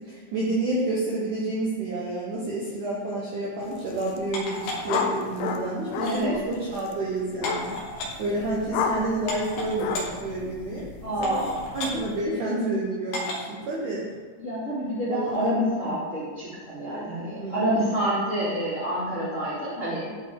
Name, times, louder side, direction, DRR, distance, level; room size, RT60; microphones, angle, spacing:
voice 1, 0.1-7.8 8.2-10.9 11.2-11.5 11.7-14.1 15.1-15.5 17.4-17.8 18.5-18.6, right 2 dB, 70° right, -5 dB, 1.9 m, -29 dB
sound 1, 3.8-4.2 4.4-12.2, left 5 dB, 80° left, 2.2 m, -33 dB
sound 2, 4.3-5.2 5.9-6.2 7.4-8.1 8.8-8.9 9.3-10.1 10.7-10.8 11.2-11.9 13.1-13.5 14.1-14.2, left 1 dB, 65° left, 2.4 m, -33 dB
voice 2, 6.0-6.3 11.0-11.6 14.4-20.1, equal, 25° left, -12 dB, 1.9 m, -27 dB
11.5 x 4.0 x 3.7 m, 1.5 s
omnidirectional pair, 4.8 m